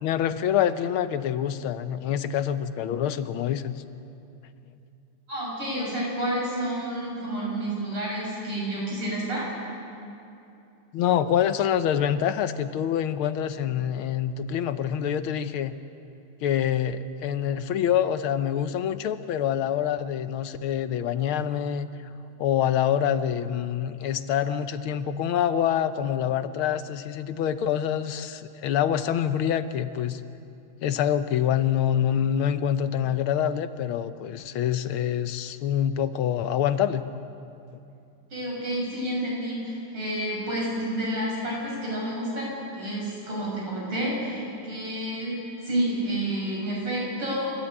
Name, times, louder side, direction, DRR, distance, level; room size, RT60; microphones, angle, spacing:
voice 1, 0.0-3.8 10.9-15.7 16.4-21.9 22.4-30.2 30.8-37.1, left 9 dB, 80° left, 11 dB, 1.6 m, -26 dB
voice 2, 5.3-9.5 38.3-45.4 45.6-47.7, right 1 dB, 75° right, -4 dB, 7.8 m, -29 dB
28.5 x 13.0 x 8.7 m, 2.7 s
omnidirectional pair, 2.4 m